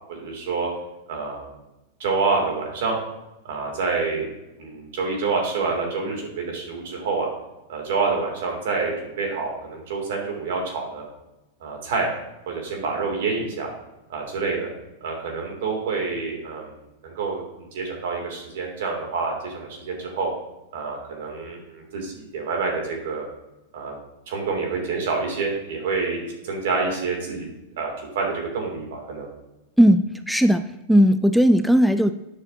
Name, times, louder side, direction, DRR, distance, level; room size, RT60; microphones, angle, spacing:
voice 1, 0.1-0.7 1.1-1.5 2.0-3.0 3.4-4.3 4.6-7.3 7.7-11.0 11.6-12.1 12.5-13.7 14.1-14.7 15.0-16.7 17.0-17.4 17.7-20.3 20.7-23.3 23.7-23.9 24.3-27.5 27.8-29.3, right 4 dB, 70° right, 1 dB, 2.8 m, -27 dB
voice 2, 29.8-32.1, equal, ahead, 10 dB, 0.3 m, -17 dB
9.7 x 6.4 x 2.8 m, 0.96 s
hypercardioid pair, 125°, 0 cm